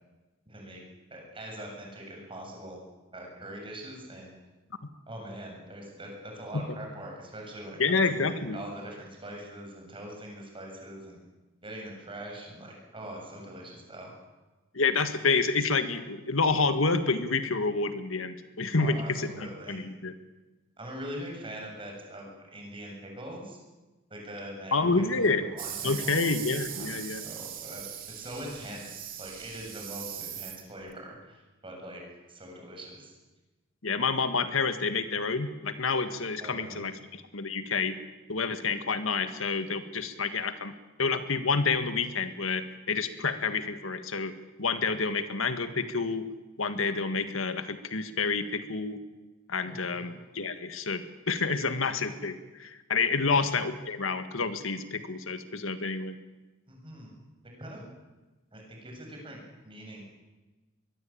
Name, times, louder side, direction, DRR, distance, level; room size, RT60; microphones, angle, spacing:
voice 1, 0.5-0.8 1.1-2.8 3.1-4.3 5.1-11.2 11.6-14.1 18.8-19.8 20.8-23.6 24.1-26.4 26.7-32.0 32.3-33.1 36.4-36.8 49.7-50.1 53.2-53.5 56.7-57.1 57.6-57.8 58.5-60.0, right 1 dB, 25° right, 0 dB, 7.5 m, -43 dB
voice 2, 7.8-8.6 14.7-20.1 24.7-25.4 25.8-27.2 33.8-38.0 38.3-40.7 41.0-44.3 44.6-46.3 46.6-49.0 49.5-56.2, left 4 dB, 90° left, 9 dB, 1.8 m, -28 dB
sound 1, 25.6-30.9, right 10 dB, 45° right, 2.9 m, -40 dB
23.5 x 22.0 x 8.8 m, 1.2 s
head